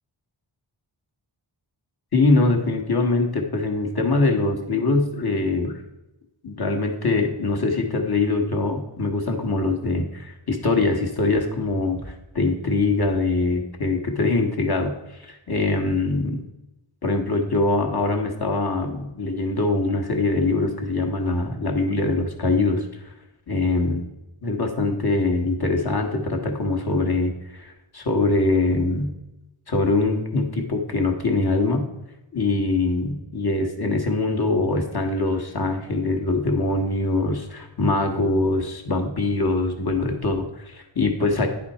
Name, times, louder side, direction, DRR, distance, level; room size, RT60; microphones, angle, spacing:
voice 1, 2.1-5.8 6.4-16.4 17.0-22.9 23.5-24.1 24.4-29.1 29.7-31.9 32.3-41.5, left 3 dB, 50° left, 3 dB, 1.4 m, -23 dB
10.0 x 4.2 x 4.2 m, 0.95 s
wide cardioid pair, 50°, 49 cm